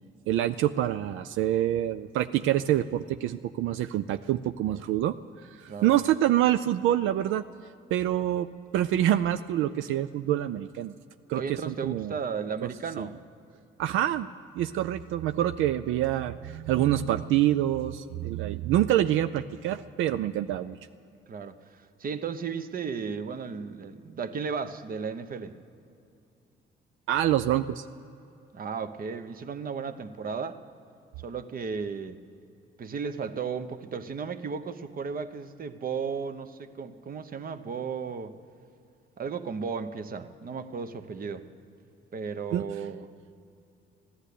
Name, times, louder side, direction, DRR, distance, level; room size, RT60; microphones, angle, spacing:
voice 1, 0.3-5.2 5.4-7.4 7.9-10.9 11.3-12.2 13.0-13.1 13.8-14.3 14.5-20.8 27.1-27.9 42.5-42.6, right 12 dB, 85° right, 11 dB, 0.4 m, -26 dB
voice 2, 11.3-13.2 21.3-25.6 28.5-30.6 31.2-32.2 32.8-38.3 39.2-41.5 42.1-43.2, right 5 dB, 45° right, 10 dB, 0.9 m, -35 dB
15.5 x 11.5 x 8.3 m, 2.6 s
cardioid pair, 90°, 20 cm